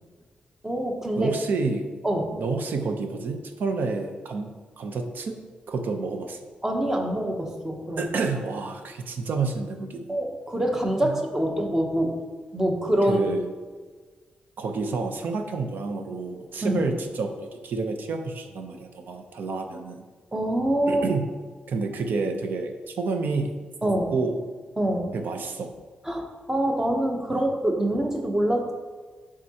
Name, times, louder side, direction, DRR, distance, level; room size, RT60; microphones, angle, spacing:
voice 1, 0.6-1.3 2.0-2.4 6.6-8.1 10.1-12.2 12.5-13.3 16.6-16.8 20.3-21.0 23.8-24.1 24.8-25.1 26.0-28.7, right 1 dB, 15° right, 2 dB, 0.8 m, -25 dB
voice 2, 1.2-1.9 2.3-4.5 4.8-5.4 5.7-6.4 8.0-10.2 11.0-11.2 13.0-13.5 14.6-20.0 20.9-21.3 21.7-23.5 23.8-24.4 25.1-25.7 27.3-27.4, right 4 dB, 70° right, 5 dB, 0.7 m, -29 dB
10.5 x 3.7 x 2.8 m, 1.4 s
wide cardioid pair, 130°, 3 cm